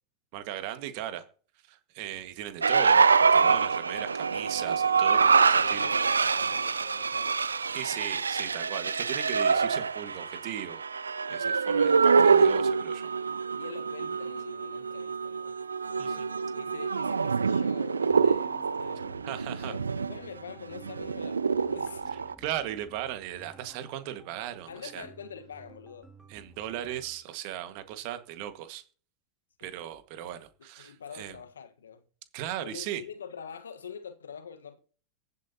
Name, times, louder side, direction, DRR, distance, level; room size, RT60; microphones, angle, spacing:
voice 1, 0.3-1.2 1.7-5.9 7.7-10.8 11.3-13.1 16.0-16.2 19.2-19.7 22.1-25.1 26.3-28.8 29.6-31.4 32.3-33.0, right 12 dB, 55° right, 1.7 m, -37 dB
sound 1, 2.6-22.3, right 5 dB, 90° right, 0.4 m, -25 dB
voice 2, 5.0-7.4 13.5-15.6 15.8-19.0 19.5-22.0 23.3-23.5 24.7-26.1 29.6-29.8 30.8-32.0 32.6-34.8, left 7 dB, 80° left, 1.4 m, -45 dB
sound 2, 18.1-27.2, right 2 dB, 10° right, 2.5 m, -54 dB
22.5 x 8.2 x 2.9 m
hypercardioid pair, 95°, 0 cm